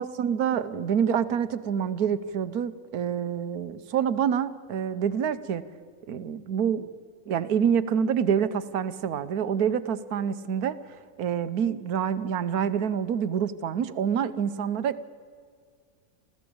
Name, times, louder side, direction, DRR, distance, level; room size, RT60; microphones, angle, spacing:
voice 1, 0.0-5.6 6.1-6.9 7.3-10.8 11.2-15.1, right 8 dB, 75° right, 13 dB, 1.3 m, -27 dB
27.5 x 15.0 x 8.6 m, 2.1 s
omnidirectional pair, 1.6 m